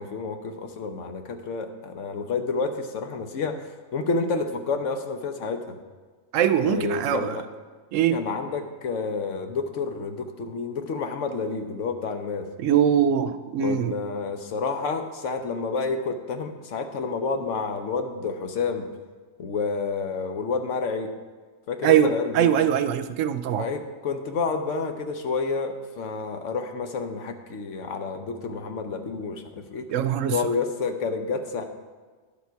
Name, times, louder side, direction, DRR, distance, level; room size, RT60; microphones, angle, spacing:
voice 1, 0.0-3.6 3.9-5.8 6.6-7.5 8.1-12.5 13.6-18.9 19.4-21.1 21.7-22.5 23.6-29.8 30.3-31.6, left 4 dB, 75° left, 6 dB, 1.2 m, -29 dB
voice 2, 6.3-7.4 7.9-8.2 12.6-13.9 21.8-23.7 29.9-30.3, right 9 dB, 80° right, 11 dB, 0.9 m, -22 dB
10.5 x 7.1 x 4.6 m, 1.4 s
omnidirectional pair, 1.3 m